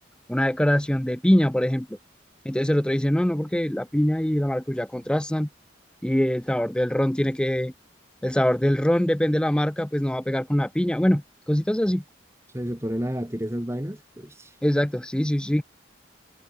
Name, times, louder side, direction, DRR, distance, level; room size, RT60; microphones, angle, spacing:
voice 1, 0.3-1.9 2.4-5.5 6.0-7.7 8.2-12.0 14.6-15.6, equal, 5° left, 0.4 m, -23 dB
voice 2, 12.5-14.6, equal, 15° right, 1.8 m, -31 dB
head